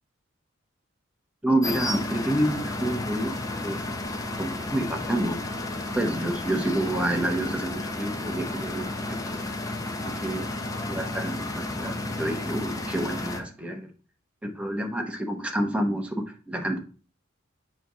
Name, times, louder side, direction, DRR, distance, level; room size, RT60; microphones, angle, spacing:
voice 1, 1.4-3.4 3.6-3.8 4.4-5.4 5.9-9.5 9.8-10.5 10.8-13.9 14.4-16.8, right 1 dB, 5° right, 3 dB, 1.0 m, -28 dB
sound 1, 1.6-13.4, left 2 dB, 15° left, 0.9 m, -32 dB
7.8 x 3.1 x 6.1 m, 0.38 s
head